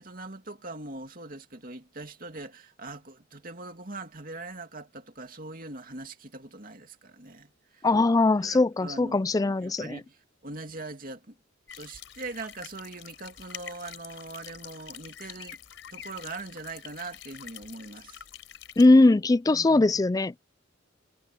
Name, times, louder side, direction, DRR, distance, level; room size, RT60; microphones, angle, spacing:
voice 1, 0.0-7.9 8.4-11.4 11.7-15.6 15.9-18.2 19.5-19.9, right 2 dB, 45° right, 2.7 m, -41 dB
voice 2, 7.8-10.0 18.8-20.3, left 2 dB, 20° left, 0.3 m, -20 dB
sound 1, 11.7-18.9, left 9 dB, 75° left, 4.1 m, -46 dB
head